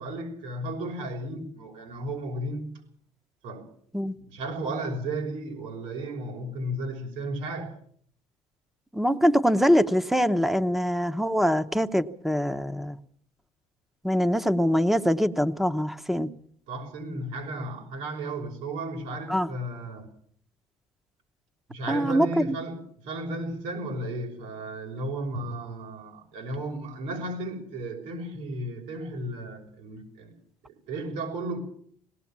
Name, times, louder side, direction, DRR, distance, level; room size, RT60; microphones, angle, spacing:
voice 1, 0.0-2.7 3.4-3.7 4.2-7.7 16.7-20.1 21.7-30.3 30.7-31.6, right 1 dB, 85° right, 2 dB, 5.9 m, -34 dB
voice 2, 8.9-13.0 14.0-16.3 19.3-19.5 21.9-22.5, equal, ahead, 11 dB, 0.8 m, -23 dB
19.5 x 18.5 x 7.3 m, 0.62 s
cardioid pair, 170°, 13 cm